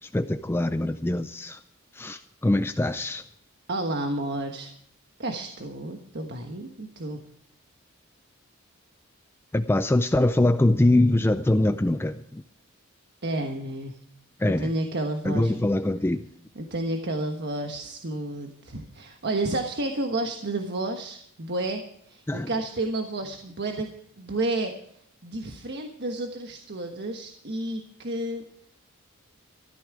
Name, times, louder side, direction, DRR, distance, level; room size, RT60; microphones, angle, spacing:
voice 1, 0.0-1.6 1.9-3.2 9.5-12.4 14.4-14.7 15.3-16.2 22.3-22.5, left 1 dB, 10° left, 0.4 m, -23 dB
voice 2, 3.7-4.7 5.2-7.2 13.2-14.0 14.6-15.5 16.5-23.9 24.2-24.7 25.2-28.4, right 2 dB, 55° right, 1.3 m, -31 dB
14.0 x 12.5 x 4.8 m
head